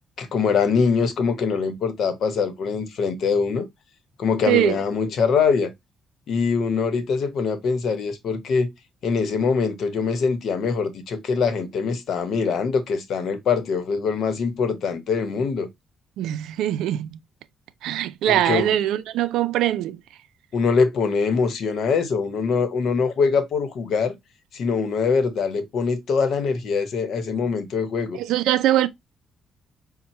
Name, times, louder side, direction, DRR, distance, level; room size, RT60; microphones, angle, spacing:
voice 1, 0.2-3.7 4.2-5.7 6.3-8.7 9.0-15.7 18.3-18.7 20.5-24.2 24.5-28.2, left 5 dB, 65° left, 0.9 m, -23 dB
voice 2, 4.5-4.8 16.2-17.2 17.8-20.0 28.2-28.9, right 12 dB, 85° right, 0.4 m, -22 dB
5.3 x 2.1 x 2.9 m
cardioid pair, 90°, 0 cm